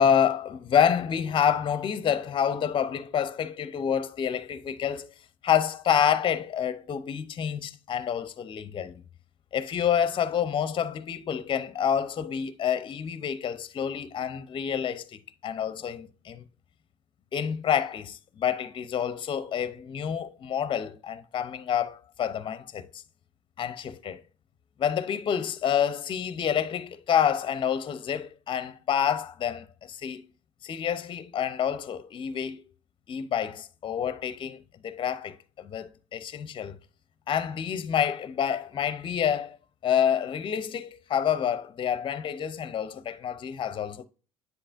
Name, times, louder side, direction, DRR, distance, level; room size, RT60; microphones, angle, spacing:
voice 1, 0.0-5.1 5.4-9.0 9.5-16.4 17.3-23.0 23.6-24.2 24.8-30.3 30.6-32.6 33.1-36.8 37.3-39.6 39.8-44.1, left 8 dB, 40° left, 0.7 m, -28 dB
9.7 x 3.9 x 2.5 m
hypercardioid pair, 65°, 13 cm